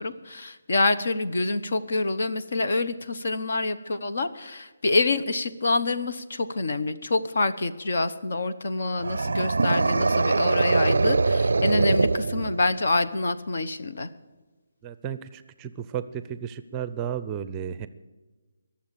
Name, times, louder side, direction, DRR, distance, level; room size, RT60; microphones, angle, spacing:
voice 1, 0.0-14.1, left 3 dB, 65° left, 10 dB, 1.1 m, -26 dB
sound 1, 9.0-12.9, right 3 dB, 80° right, 0.4 m, -23 dB
voice 2, 14.8-17.9, right 9 dB, 15° right, 13 dB, 0.5 m, -33 dB
21.0 x 7.4 x 7.5 m, 1.2 s
hypercardioid pair, 165°, 0 cm